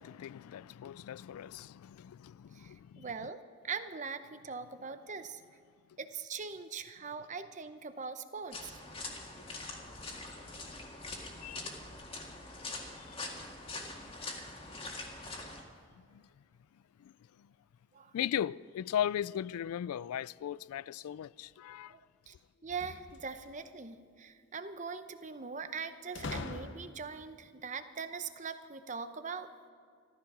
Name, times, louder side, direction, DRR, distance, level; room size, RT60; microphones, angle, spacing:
voice 1, 0.0-3.1 11.4-11.7 13.1-13.2 16.1-16.2 17.0-17.1 18.1-21.9, left 10 dB, 85° left, 0.3 m, -37 dB
voice 2, 2.5-3.4 3.6-5.4 6.0-8.8 17.9-18.1 21.9-22.3 22.6-29.5, right 5 dB, 35° right, 0.7 m, -41 dB
sound 1, 8.5-15.6, left 2 dB, 25° left, 1.9 m, -43 dB
sound 2, 22.6-23.7 26.2-27.2, left 3 dB, 55° left, 0.9 m, -42 dB
14.5 x 14.0 x 6.1 m
head